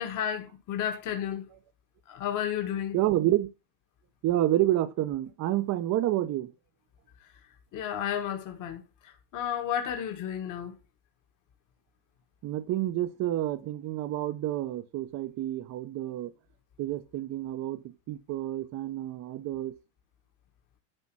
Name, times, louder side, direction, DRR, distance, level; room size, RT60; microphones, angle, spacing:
voice 1, 0.0-1.5 2.1-3.0 7.7-10.7, left 9 dB, 40° left, 1.7 m, -32 dB
voice 2, 2.9-3.5 4.2-6.5 12.4-16.3 16.8-19.7, right 14 dB, 35° right, 0.9 m, -29 dB
9.9 x 3.5 x 6.1 m
supercardioid pair, 120°, 49 cm